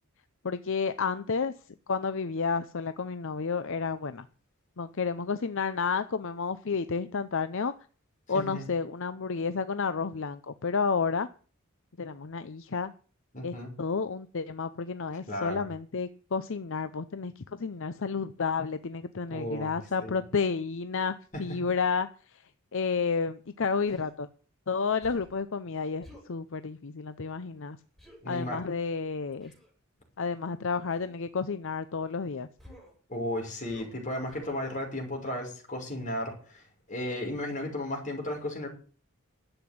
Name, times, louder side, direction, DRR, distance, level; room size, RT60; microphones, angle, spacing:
voice 1, 0.4-1.5 1.9-4.3 4.8-7.7 8.3-11.3 12.0-12.9 13.4-22.1 22.7-24.3 24.7-27.8 28.3-29.5 30.2-32.5, left 5 dB, 65° left, 12 dB, 0.7 m, -31 dB
voice 2, 8.3-8.7 13.3-13.7 15.3-15.7 19.3-20.2 21.3-21.6 28.2-28.6 33.1-36.6 36.9-38.7, left 1 dB, 35° left, 1 dB, 6.0 m, -34 dB
Human voice, 23.9-24.1 25.0-25.4 26.0-26.3 28.0-28.2 29.4-29.7 30.9-31.2 32.6-33.0 33.7-34.0 34.3-34.6, equal, ahead, 6.4 m, -52 dB
12.5 x 8.1 x 8.6 m, 0.39 s
head